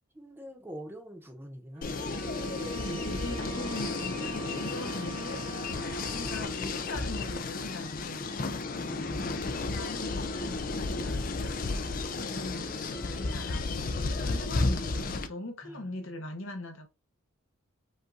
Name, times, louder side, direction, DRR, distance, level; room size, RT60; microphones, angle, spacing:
voice 1, 0.1-2.2 8.6-9.5 15.6-16.3, equal, 10° right, 1.0 m, -45 dB
Bowed string instrument, 1.7-6.6, right 7 dB, 30° right, 0.3 m, -45 dB
sound 1, 1.8-15.3, left 3 dB, 40° left, 0.5 m, -33 dB
voice 2, 2.6-8.3 9.5-12.7 13.0-16.9, left 2 dB, 70° left, 1.0 m, -41 dB
5.3 x 2.5 x 3.8 m
head